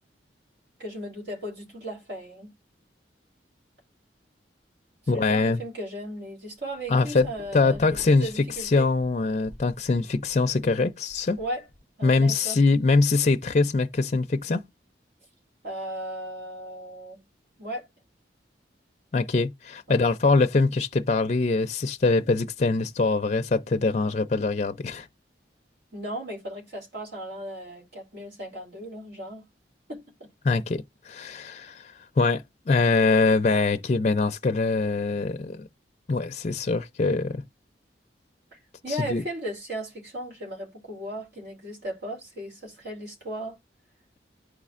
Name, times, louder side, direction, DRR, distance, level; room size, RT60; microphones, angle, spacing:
voice 1, 0.8-2.5 5.1-8.9 11.4-11.7 12.0-12.6 15.6-17.2 17.6-17.9 19.9-20.0 25.9-29.4 29.9-30.0 38.5-43.6, right 1 dB, 70° right, 2.9 m, -36 dB
voice 2, 5.1-5.6 6.9-7.3 7.5-11.4 12.0-14.6 19.1-25.1 30.4-35.7 36.1-37.4 39.1-39.2, left 3 dB, 40° left, 0.4 m, -23 dB
sound 1, 6.6-9.1 9.4-11.8, equal, 40° right, 1.8 m, -47 dB
11.0 x 4.2 x 2.4 m
head